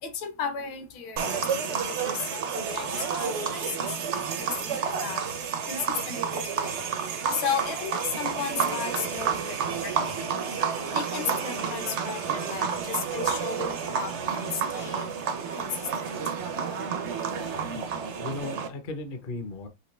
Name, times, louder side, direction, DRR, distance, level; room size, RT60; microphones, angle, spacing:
voice 1, 0.0-5.2 5.7-6.8 7.3-10.5 10.9-15.1 15.6-16.1, left 6 dB, 75° left, 1.8 m, -35 dB
sound 1, 1.2-18.7, right 6 dB, 75° right, 0.6 m, -30 dB
voice 2, 17.7-19.7, left 2 dB, 60° left, 0.5 m, -37 dB
5.7 x 2.9 x 3.2 m
omnidirectional pair, 2.2 m